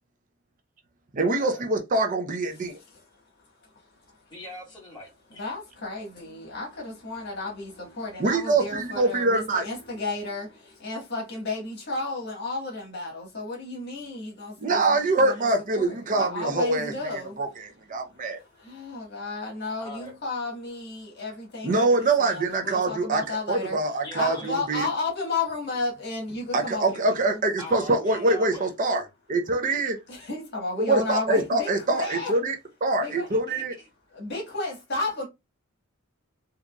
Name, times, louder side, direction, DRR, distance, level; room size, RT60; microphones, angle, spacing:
voice 1, 1.1-2.8 8.2-9.7 14.6-16.9 17.4-18.4 21.6-24.9 26.5-29.0 29.3-30.0 30.9-32.6 32.8-33.7, right 2 dB, 40° right, 0.6 m, -24 dB
voice 2, 2.7-3.0 5.3-15.5 15.7-17.4 18.4-23.8 24.1-27.4 30.1-32.4 33.0-33.3 34.1-35.3, left 3 dB, 55° left, 1.5 m, -33 dB
voice 3, 4.3-5.5 19.8-20.1 24.0-24.6 27.6-29.1 33.0-33.9, left 2 dB, 20° left, 1.8 m, -42 dB
3.8 x 2.9 x 2.3 m
head